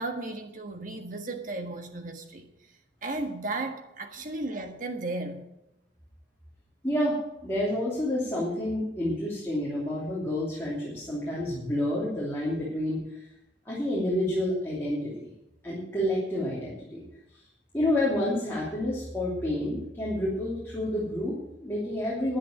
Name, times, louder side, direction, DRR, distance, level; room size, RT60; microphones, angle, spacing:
voice 1, 0.0-2.5 3.0-5.5, right 2 dB, 40° right, 1.5 m, -34 dB
voice 2, 6.8-7.2 7.4-13.0 13.6-15.3 15.6-17.0 17.7-22.4, left 1 dB, 15° left, 3.1 m, -29 dB
10.5 x 8.9 x 8.7 m
head